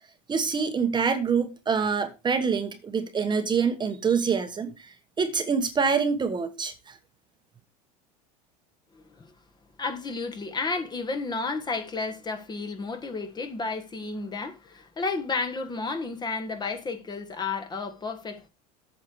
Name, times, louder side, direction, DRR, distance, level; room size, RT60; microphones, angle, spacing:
voice 1, 0.3-7.0, right 5 dB, 20° right, 1.1 m, -26 dB
voice 2, 8.9-9.3 9.8-18.5, left 4 dB, 20° left, 1.5 m, -32 dB
8.5 x 6.5 x 4.6 m
supercardioid pair, 110°, 20 cm